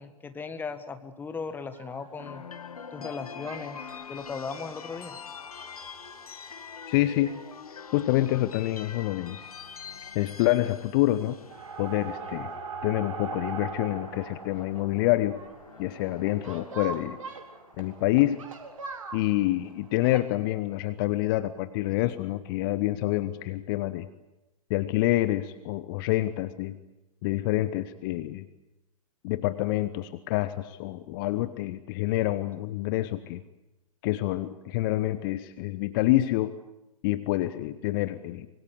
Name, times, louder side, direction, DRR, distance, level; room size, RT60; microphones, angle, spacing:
voice 1, 0.0-2.4 2.9-5.2, left 5 dB, 10° left, 10 dB, 1.6 m, -37 dB
sound 1, 1.5-3.1 3.4-4.0 4.5-6.5 7.0-7.1 7.2-7.4 7.7-7.8 9.1-9.3 9.6-10.1 10.4-10.9 11.2-20.2, right 6 dB, 55° right, 4.3 m, -42 dB
sound 2, 2.2-18.4, left 6 dB, 70° left, 2.0 m, -45 dB
voice 2, 6.9-7.3 7.9-9.5 10.1-11.4 11.8-12.5 12.8-15.4 15.8-17.2 17.8-18.4 19.1-24.1 24.7-26.8 27.2-28.5 29.2-33.4 34.0-36.6 37.0-38.5, left 16 dB, 35° left, 14 dB, 1.0 m, -27 dB
25.5 x 23.0 x 8.2 m, 0.98 s
figure-of-eight pair, 115°, 20 cm